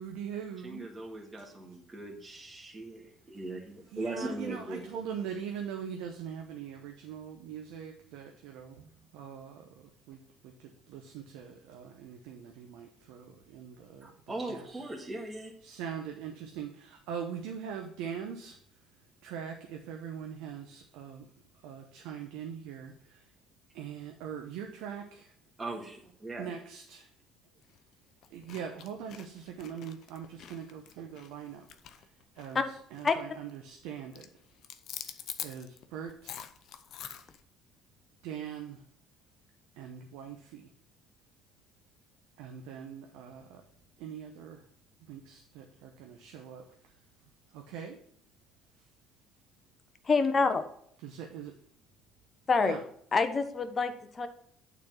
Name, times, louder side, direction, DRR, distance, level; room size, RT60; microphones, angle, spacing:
voice 1, 0.0-0.9 3.9-14.1 14.5-14.7 15.6-18.6 19.2-21.3 21.6-23.3 23.7-25.3 26.4-27.0 28.3-31.7 31.9-34.3 35.0-35.1 35.4-36.5 38.2-38.8 39.8-40.7 42.4-43.6 44.0-44.7 45.0-46.9 47.5-48.0 51.0-51.5 52.6-52.8, right 8 dB, 80° right, 3 dB, 0.8 m, -42 dB
voice 2, 0.6-4.8 14.0-15.5 25.6-26.5, right 2 dB, 25° right, -1 dB, 1.9 m, -40 dB
sound 1, 27.6-27.8 28.2-32.7 32.9-33.2 33.5-33.9 34.1-37.4, left 9 dB, 60° left, 0.7 m, -45 dB
voice 3, 50.0-50.6 52.5-52.8 53.1-54.3, left 4 dB, 35° left, 8 dB, 1.0 m, -26 dB
9.0 x 4.2 x 5.8 m, 0.64 s
supercardioid pair, 75°, 0 cm